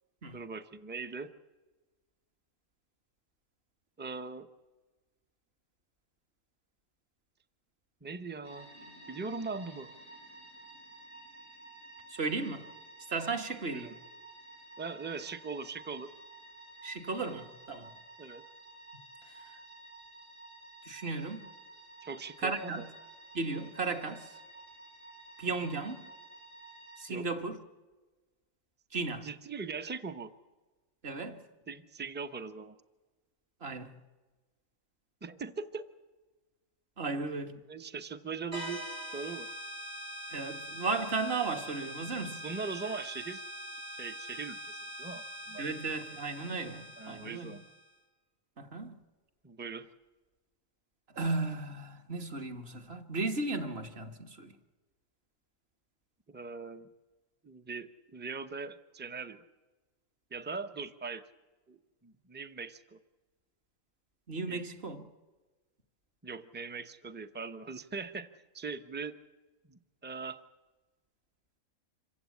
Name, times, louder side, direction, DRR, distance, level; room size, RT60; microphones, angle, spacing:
voice 1, 0.3-1.3 4.0-4.5 8.0-8.7 9.1-9.9 13.7-14.0 14.8-16.1 18.2-18.5 22.0-22.9 25.6-25.8 27.1-27.3 29.2-30.3 31.7-32.8 35.2-35.9 37.7-38.8 39.1-39.5 42.4-43.4 43.9-45.7 47.0-47.6 49.4-49.9 56.3-56.9 57.4-59.4 60.3-61.2 61.7-63.0 64.5-64.7 66.2-69.1 69.7-70.4, right 4 dB, 10° right, 0.6 m, -40 dB
sound 1, 8.4-27.0, right 2 dB, 70° right, 5.0 m, -52 dB
voice 2, 12.1-12.6 13.1-13.9 16.8-17.9 19.3-19.4 20.8-21.5 22.4-22.8 23.3-24.3 25.4-26.0 27.0-27.6 28.9-29.3 31.0-31.4 33.6-33.9 37.0-37.6 40.3-42.4 45.6-47.5 48.6-49.0 51.1-54.6 64.3-65.0, right 3 dB, 45° right, 1.7 m, -35 dB
sound 2, 38.5-47.9, equal, 90° right, 4.3 m, -43 dB
26.5 x 15.5 x 8.5 m
omnidirectional pair, 1.5 m